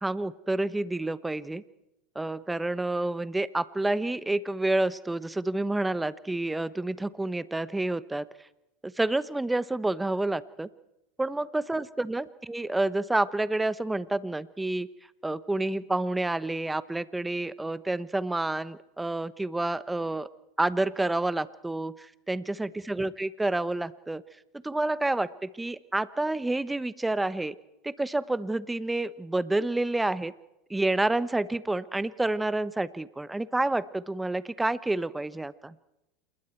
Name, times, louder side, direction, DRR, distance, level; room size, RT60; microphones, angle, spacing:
voice 1, 0.0-1.6 2.1-8.3 8.8-10.7 11.2-14.9 15.2-20.3 20.6-24.2 24.6-27.6 27.8-30.3 30.7-35.7, right 2 dB, 10° right, 16 dB, 1.0 m, -29 dB
28.0 x 21.5 x 4.6 m, 0.90 s
hypercardioid pair, 90°, 0 cm